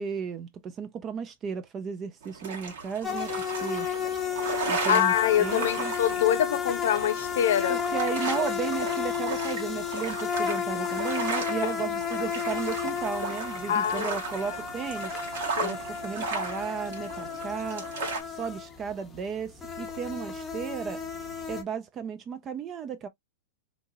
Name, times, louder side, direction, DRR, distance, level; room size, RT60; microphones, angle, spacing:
voice 1, 0.0-3.3 3.6-3.9 4.7-5.1 5.4-5.9 7.7-15.2 15.6-17.8 18.3-21.0 21.5-23.1, right 6 dB, 30° right, 0.4 m, -34 dB
sound 1, 2.2-18.2, right 4 dB, 70° right, 1.2 m, -36 dB
sound 2, 3.0-21.6, left 7 dB, 10° left, 0.7 m, -33 dB
voice 2, 4.9-7.8 8.3-8.4 11.6-11.7 13.7-14.2 15.6-15.8, left 10 dB, 75° left, 0.5 m, -25 dB
2.8 x 2.6 x 2.6 m
hypercardioid pair, 125°, 0 cm